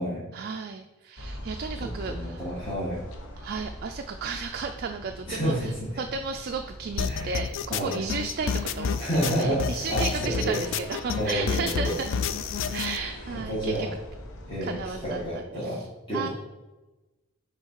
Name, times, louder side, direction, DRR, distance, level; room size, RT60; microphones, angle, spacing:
voice 1, 0.3-2.4 3.4-12.1 12.7-13.9 14.6-15.9 16.1-16.3, right 5 dB, 45° right, 5 dB, 0.3 m, -34 dB
sound 1, 1.2-15.3, equal, 80° left, 1.1 m, -43 dB
voice 2, 2.0-3.0 5.3-6.0 7.0-7.3 7.7-8.0 9.0-9.6 9.9-10.6 11.1-12.0 13.3-13.9 14.5-16.3, equal, 20° left, -10 dB, 1.7 m, -29 dB
sound 2, 7.0-13.0, left 6 dB, 60° left, 0.3 m, -30 dB
sound 3, 8.4-13.4, equal, 40° left, 0.8 m, -46 dB
6.4 x 3.8 x 4.7 m, 1.1 s
head